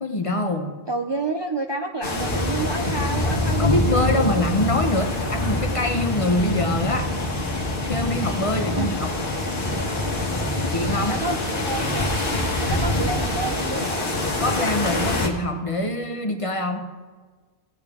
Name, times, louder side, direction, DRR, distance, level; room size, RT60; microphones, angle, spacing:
voice 1, 0.0-0.8 3.6-7.1 7.9-9.2 10.6-11.1 14.4-16.9, left 2 dB, 35° left, 5 dB, 0.8 m, -24 dB
voice 2, 0.9-4.4 8.8-8.9 11.1-12.2 12.6-14.1, right 3 dB, 35° right, 3 dB, 0.4 m, -29 dB
sound 1, 2.0-15.3, left 1 dB, 60° left, 1.5 m, -25 dB
16.0 x 8.8 x 3.5 m, 1.4 s
omnidirectional pair, 1.1 m